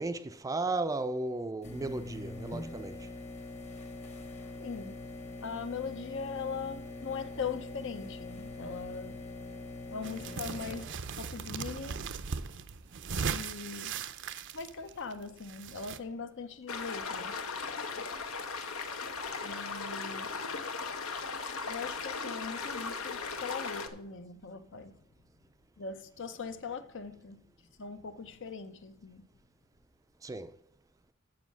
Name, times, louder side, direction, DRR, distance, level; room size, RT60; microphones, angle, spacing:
voice 1, 0.0-3.1 30.2-30.6, right 2 dB, 15° right, 0.4 m, -35 dB
sound 1, 1.6-10.8, left 2 dB, 30° left, 1.2 m, -43 dB
voice 2, 4.6-5.1 5.4-9.3 9.9-12.1 13.2-14.0 14.5-17.4 19.4-20.3 21.6-25.0 25.8-27.5 27.8-29.3, left 5 dB, 60° left, 0.7 m, -40 dB
sound 2, 10.0-16.0, right 6 dB, 60° right, 0.6 m, -38 dB
sound 3, 16.7-23.9, left 4 dB, 80° left, 1.1 m, -37 dB
7.4 x 7.3 x 6.1 m
head